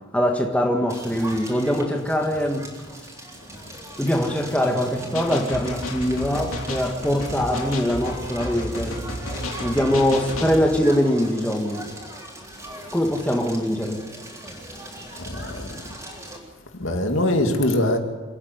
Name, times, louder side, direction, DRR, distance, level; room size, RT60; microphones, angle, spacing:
voice 1, 0.1-2.7 4.0-8.9 9.6-11.8 12.9-14.0, equal, 5° left, 1.7 m, -22 dB
Crackle, 0.9-16.4, right 1 dB, 15° right, 3.6 m, -39 dB
sound 1, 5.1-10.6, left 1 dB, 85° left, 3.5 m, -32 dB
voice 2, 15.3-15.7 16.8-18.0, left 1 dB, 70° left, 2.6 m, -22 dB
28.5 x 9.8 x 9.5 m
head